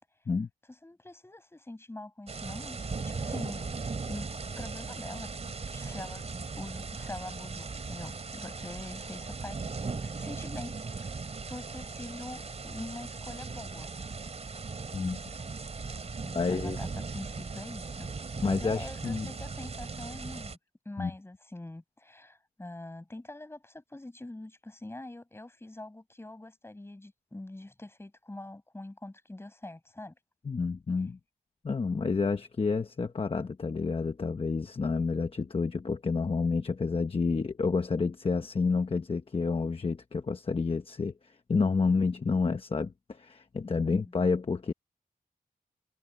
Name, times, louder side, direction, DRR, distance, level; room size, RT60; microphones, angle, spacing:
voice 1, 0.7-4.3 4.6-5.3 5.7-11.2 11.5-13.9 16.2-18.1 18.4-20.6 20.9-30.1 43.8-44.1, left 2 dB, 15° left, 7.1 m, -44 dB
sound 1, 2.3-20.6, right 4 dB, 45° right, 3.3 m, -38 dB
voice 2, 16.3-16.9 18.4-19.3 21.0-21.1 30.4-31.2 31.6-44.7, left 4 dB, 35° left, 1.0 m, -29 dB
wide cardioid pair, 150°, 15 cm